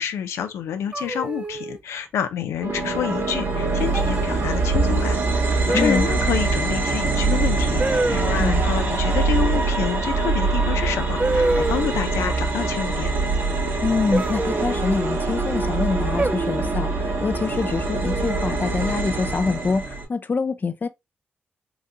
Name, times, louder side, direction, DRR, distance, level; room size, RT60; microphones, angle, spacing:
voice 1, 0.0-5.2 5.4-13.1, left 9 dB, 90° left, 0.5 m, -28 dB
sound 1, 0.9-1.8 3.0-3.4 3.9-4.3 5.7-6.3 7.8-8.4 10.3-10.4 11.2-12.2 14.1-15.2 16.2-16.8 18.0-18.6, right 2 dB, 25° right, 0.5 m, -27 dB
sound 2, 2.6-20.0, right 3 dB, 60° right, 1.8 m, -23 dB
voice 2, 5.7-6.0 8.4-8.6 13.8-20.9, left 4 dB, 45° left, 0.6 m, -25 dB
4.0 x 2.6 x 3.4 m
cardioid pair, 60°, 4 cm